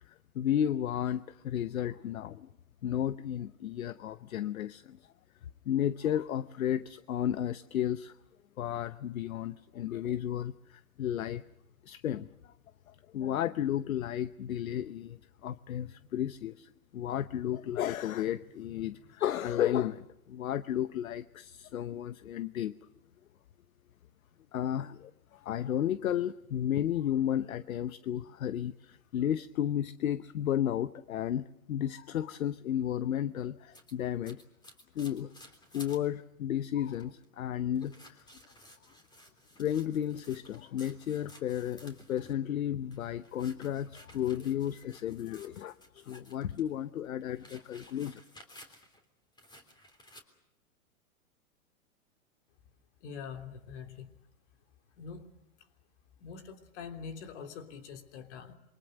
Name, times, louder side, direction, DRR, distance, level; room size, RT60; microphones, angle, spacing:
voice 1, 0.1-2.5 2.8-5.0 5.7-8.2 8.6-11.4 11.8-12.5 12.9-22.7 24.5-34.4 34.9-35.3 35.7-38.2 39.6-48.2, left 10 dB, 70° left, 14 dB, 0.9 m, -33 dB
sound 1, 33.7-36.1 36.5-36.6 36.8-37.2 37.7-42.4 42.8-46.7 47.0-49.0 49.4-50.2, left 1 dB, 10° left, 3.5 m, -55 dB
voice 2, 53.0-54.1 55.0-55.3 56.2-58.5, left 6 dB, 55° left, 5 dB, 3.3 m, -44 dB
27.5 x 24.0 x 6.5 m, 0.88 s
hypercardioid pair, 120°, 43 cm